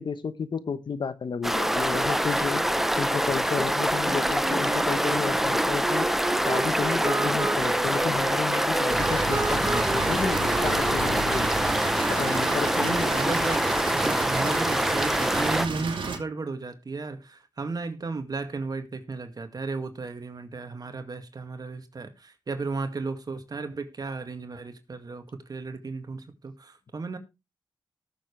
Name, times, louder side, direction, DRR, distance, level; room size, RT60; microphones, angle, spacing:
voice 1, 0.0-2.6 2.9-6.1 6.4-11.5 12.1-13.5, left 6 dB, 65° left, 1.0 m, -32 dB
sound 1, 1.4-15.7, equal, 5° right, 0.8 m, -25 dB
sound 2, 4.1-13.2, right 3 dB, 35° right, 0.6 m, -34 dB
sound 3, 8.9-16.2, right 4 dB, 80° right, 2.4 m, -32 dB
voice 2, 12.8-27.2, right 3 dB, 50° right, 2.1 m, -34 dB
19.0 x 7.2 x 3.3 m
cardioid pair, 70°, 8 cm